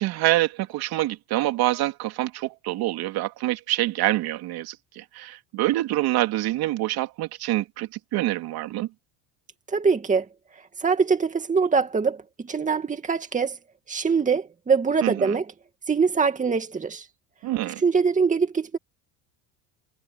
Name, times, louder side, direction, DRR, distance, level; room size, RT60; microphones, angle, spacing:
voice 1, 0.0-8.9 15.0-15.4 17.4-17.8, right 16 dB, 65° right, 3.3 m, -26 dB
voice 2, 9.7-10.3 10.8-13.6 13.9-15.5 15.9-17.1 17.6-18.8, right 5 dB, 20° right, 2.3 m, -23 dB
cardioid pair, 130°, 40 cm